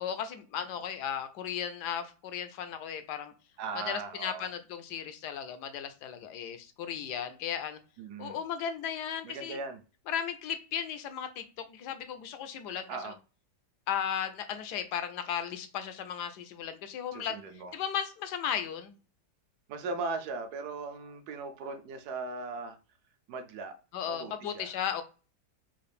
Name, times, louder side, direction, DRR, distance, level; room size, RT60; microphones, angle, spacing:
voice 1, 0.0-3.3 3.9-7.8 8.2-9.6 10.1-12.9 13.9-17.4 17.7-18.9 23.9-25.0, left 8 dB, 80° left, 1.1 m, -35 dB
voice 2, 3.6-4.5 8.0-8.4 9.2-9.8 12.9-13.2 17.1-17.7 19.7-22.8 23.3-23.8 24.1-24.8, right 4 dB, 75° right, 1.1 m, -38 dB
3.8 x 2.4 x 3.3 m
omnidirectional pair, 1.8 m